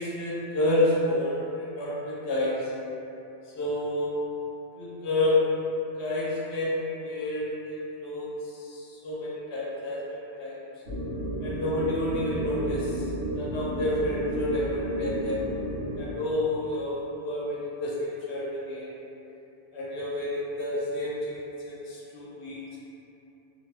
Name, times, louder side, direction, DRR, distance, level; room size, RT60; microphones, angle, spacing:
voice 1, 0.0-2.6 3.5-4.1 4.8-5.4 6.0-10.6 11.4-13.0 13.3-15.4 16.0-18.9 19.7-21.4 21.7-22.8, left 1 dB, 90° left, -6 dB, 0.9 m, -29 dB
sound 1, 10.9-16.0, equal, 85° right, 1.0 m, -32 dB
2.5 x 2.0 x 3.2 m, 2.9 s
omnidirectional pair, 1.1 m